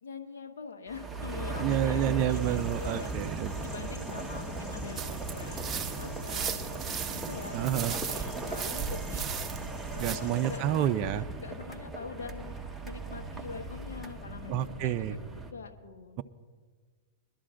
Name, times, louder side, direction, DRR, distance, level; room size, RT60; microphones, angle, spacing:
voice 1, 0.0-3.1 3.6-9.3 9.9-12.6 12.8-16.2, left 5 dB, 80° left, 2 dB, 1.4 m, -44 dB
sound 1, 0.9-15.5, right 2 dB, 5° right, 1.3 m, -38 dB
voice 2, 1.6-3.5 7.5-7.9 10.0-11.2 14.5-15.2, right 11 dB, 45° right, 9 dB, 0.5 m, -29 dB
sound 2, 2.3-10.6, left 1 dB, 25° left, 4.5 m, -52 dB
sound 3, 5.0-10.2, right 6 dB, 20° right, 1.0 m, -37 dB
23.0 x 12.0 x 2.5 m, 1.5 s
hypercardioid pair, 115°, 0 cm